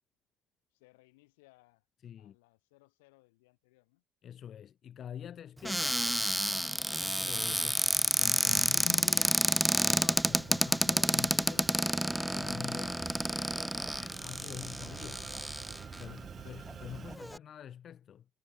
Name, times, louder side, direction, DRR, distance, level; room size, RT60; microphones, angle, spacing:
voice 1, 0.7-1.9 2.2-4.0, left 24 dB, 85° left, 4.9 m, -64 dB
voice 2, 2.0-2.4 4.2-6.2 7.0-11.8 12.3-13.3 14.0-18.3, left 9 dB, 50° left, 1.9 m, -46 dB
Cupboard open or close, 5.6-16.0 16.7-16.8 17.0-17.4, equal, 5° right, 0.5 m, -30 dB
sound 1, 9.9-17.2, right 8 dB, 45° right, 1.0 m, -49 dB
supercardioid pair, 80°, 0 cm